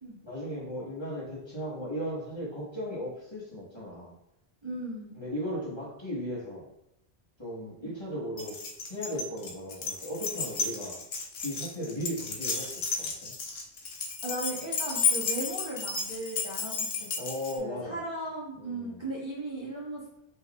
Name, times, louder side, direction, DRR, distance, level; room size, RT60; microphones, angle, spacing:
voice 1, 0.2-4.1 5.2-6.7 7.4-8.6 8.9-11.0 11.4-13.4 17.2-18.0 18.5-19.0, equal, 25° left, -8 dB, 1.5 m, -36 dB
voice 2, 4.6-5.2 7.8-7.9 14.2-17.1 17.6-20.2, right 1 dB, 30° right, -8 dB, 1.1 m, -37 dB
Keys jangling, 8.4-17.6, left 5 dB, 75° left, 0.9 m, -32 dB
5.5 x 3.2 x 2.4 m, 0.83 s
omnidirectional pair, 1.1 m